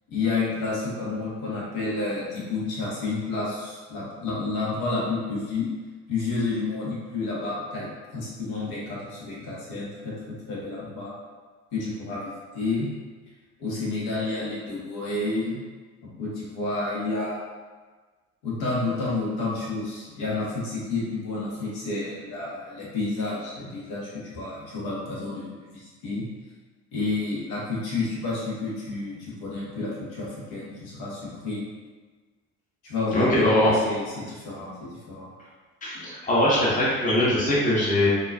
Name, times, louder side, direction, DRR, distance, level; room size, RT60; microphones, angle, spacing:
voice 1, 0.1-5.7 6.1-10.1 10.5-11.1 11.7-12.9 13.6-15.6 16.0-17.4 18.4-26.2 26.9-31.7 32.8-35.3, left 3 dB, 55° left, -6 dB, 1.2 m, -30 dB
voice 2, 33.1-33.7 35.8-38.1, left 1 dB, 15° left, -7 dB, 1.0 m, -21 dB
4.3 x 2.5 x 2.3 m, 1.4 s
figure-of-eight pair, 60°, 45 cm